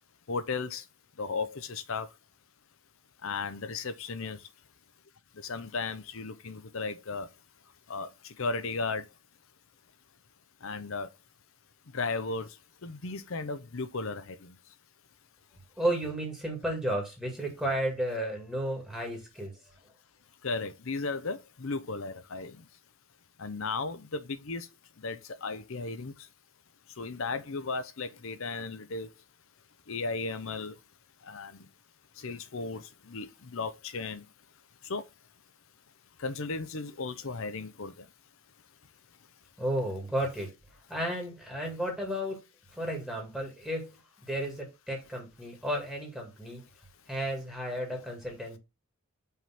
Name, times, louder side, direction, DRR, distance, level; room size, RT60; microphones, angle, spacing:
voice 1, 0.3-0.8 1.2-2.1 3.2-4.4 5.4-7.3 7.9-8.1 8.4-9.0 10.6-11.1 11.9-12.5 12.8-14.5 20.4-22.5 23.4-24.7 25.0-26.1 27.0-29.1 29.9-30.7 31.3-31.5 32.2-32.8 33.1-34.2 34.9-35.0 36.2-37.9, left 4 dB, 65° left, 0.7 m, -35 dB
voice 2, 15.8-19.6 39.6-40.5 40.9-42.4 42.7-44.0 44.2-46.6 47.1-48.6, right 1 dB, 5° right, 2.1 m, -33 dB
5.6 x 3.7 x 5.7 m
head